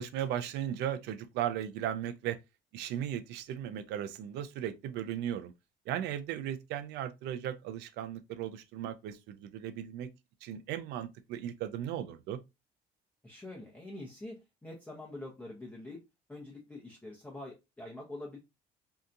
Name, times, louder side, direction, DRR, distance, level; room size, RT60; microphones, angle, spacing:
voice 1, 0.0-2.4 2.7-5.5 5.9-10.1 10.4-12.4, right 10 dB, 85° right, 0.4 m, -36 dB
voice 2, 13.2-16.0 16.3-18.4, left 2 dB, 10° left, 0.7 m, -45 dB
2.7 x 2.3 x 2.5 m
cardioid pair, 110°, 17 cm